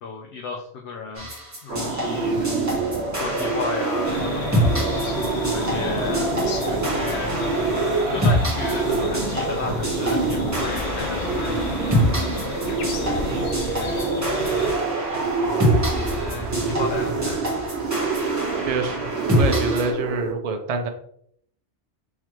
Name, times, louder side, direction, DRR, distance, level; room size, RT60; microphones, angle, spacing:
voice 1, 0.0-1.3 1.6-2.5 3.2-4.4 5.5-6.3 6.6-7.3 8.1-12.0 13.1-14.0 15.1-17.6, left 5 dB, 75° left, 1 dB, 0.9 m, -34 dB
sound 1, 1.1-19.9, equal, 15° right, 1.0 m, -27 dB
sound 2, 1.7-20.3, right 4 dB, 75° right, 0.9 m, -26 dB
sound 3, 4.0-14.7, left 5 dB, 55° left, 0.6 m, -32 dB
voice 2, 13.2-13.5 18.6-20.9, right 3 dB, 50° right, 6 dB, 0.4 m, -27 dB
3.9 x 3.1 x 3.0 m, 0.66 s
omnidirectional pair, 1.2 m